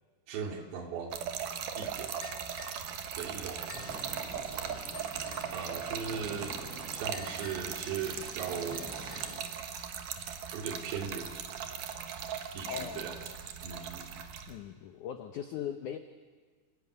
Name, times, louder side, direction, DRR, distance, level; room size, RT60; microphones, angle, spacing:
voice 1, 0.3-1.2 1.7-2.1 3.1-3.8 5.5-6.6 6.9-8.9 10.5-11.3 12.5-13.2 13.6-14.3, right 6 dB, 80° right, 3 dB, 4.5 m, -38 dB
Trickle dribble / Fill (with liquid), 1.1-14.5, right 8 dB, 60° right, 2.6 m, -39 dB
sound 1, 2.2-2.9 3.7-4.0 4.9-5.6 7.1-7.8 8.7-9.4, left 8 dB, 45° left, 2.8 m, -51 dB
sound 2, 3.7-9.4, equal, ahead, 6.1 m, -48 dB
voice 2, 12.7-13.3 14.5-16.0, left 9 dB, 85° left, 8 dB, 1.7 m, -39 dB
28.0 x 16.5 x 9.6 m, 1.5 s
omnidirectional pair, 4.9 m